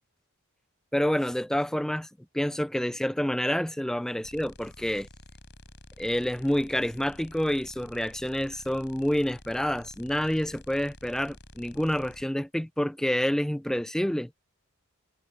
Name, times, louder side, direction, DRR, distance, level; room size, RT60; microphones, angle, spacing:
voice 1, 0.9-2.1 2.3-5.1 6.0-14.3, equal, ahead, 0.3 m, -28 dB
sound 1, 4.2-12.2, left 2 dB, 55° left, 4.4 m, -50 dB
head